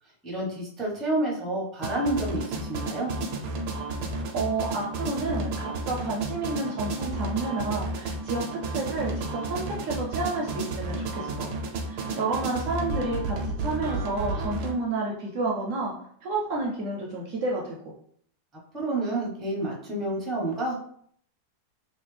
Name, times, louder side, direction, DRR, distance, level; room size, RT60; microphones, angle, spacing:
voice 1, 0.2-3.1 18.7-20.8, right 1 dB, ahead, -4 dB, 0.7 m, -29 dB
sound 1, 1.8-14.7, right 2 dB, 85° right, 1.2 m, -32 dB
voice 2, 4.1-11.5 11.8-15.9 16.2-17.9, right 3 dB, 65° right, -2 dB, 0.9 m, -30 dB
3.2 x 2.7 x 3.2 m, 0.62 s
omnidirectional pair, 1.7 m